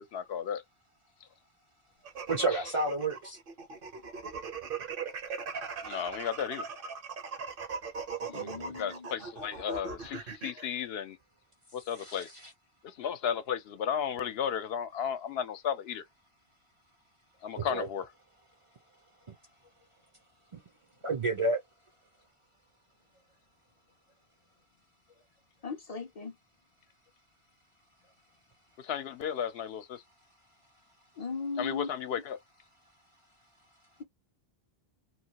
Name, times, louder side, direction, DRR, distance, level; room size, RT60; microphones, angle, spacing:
voice 1, 0.1-0.6 2.5-2.6 5.8-6.6 8.2-11.2 11.7-12.3 12.8-16.0 17.4-18.0 28.8-30.0 31.6-32.4, left 8 dB, 75° left, 0.8 m, -34 dB
sound 1, 2.0-10.7, right 5 dB, 60° right, 0.9 m, -39 dB
voice 2, 2.3-3.4 8.4-8.7 12.0-12.2 17.6-17.9 19.3-19.4 20.5-20.6 21.0-21.6, right 2 dB, 40° right, 0.5 m, -31 dB
voice 3, 8.3-9.1 25.6-26.4 31.2-31.9, left 4 dB, 50° left, 0.5 m, -37 dB
2.9 x 2.2 x 2.8 m
omnidirectional pair, 1.0 m